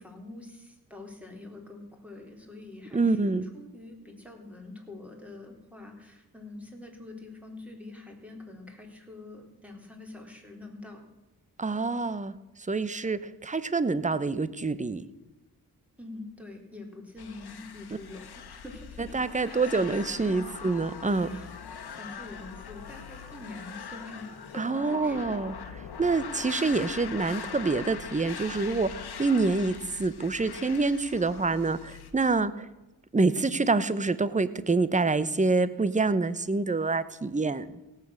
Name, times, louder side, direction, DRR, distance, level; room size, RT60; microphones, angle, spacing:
voice 1, 0.0-11.0 16.0-19.2 19.5-20.6 21.3-21.5 21.9-25.4, left 2 dB, 5° right, 2 dB, 3.8 m, -45 dB
voice 2, 2.9-3.5 11.6-15.0 19.0-21.4 24.6-32.7 33.1-37.7, right 3 dB, 20° right, 15 dB, 0.9 m, -27 dB
sound 1, 17.2-32.1, left 7 dB, 80° left, 1.5 m, -42 dB
17.5 x 8.5 x 6.5 m, 1.1 s
cardioid pair, 65°, 38 cm